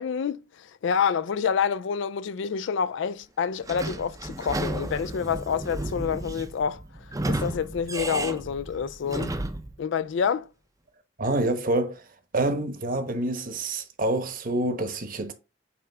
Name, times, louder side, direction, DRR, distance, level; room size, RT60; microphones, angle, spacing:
voice 1, 0.0-6.8 7.3-9.4 9.8-10.5, left 7 dB, 65° left, 0.4 m, -28 dB
Sliding door / Squeak, 3.6-9.7, right 2 dB, 15° right, 0.6 m, -33 dB
voice 2, 11.2-12.0 12.3-15.3, right 2 dB, 45° right, 1.0 m, -27 dB
8.7 x 3.3 x 3.4 m
head